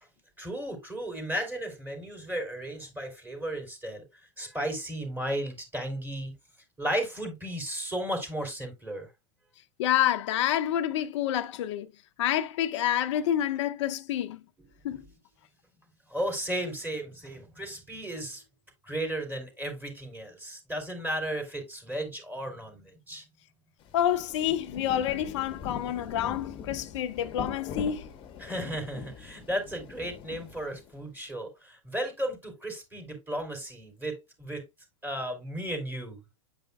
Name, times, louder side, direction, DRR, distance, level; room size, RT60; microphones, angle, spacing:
voice 1, 0.4-4.0 4.4-6.3 6.8-9.1 14.6-15.0 16.1-18.4 18.8-23.2 28.4-34.6 35.0-36.2, right 1 dB, 10° right, 3.9 m, -34 dB
voice 2, 9.8-11.9 12.2-14.4 14.8-15.0 23.9-28.1, left 11 dB, 65° left, 0.8 m, -28 dB
Rain, 23.8-31.0, left 7 dB, 30° left, 1.2 m, -42 dB
9.7 x 5.2 x 2.3 m
hypercardioid pair, 120°, 17 cm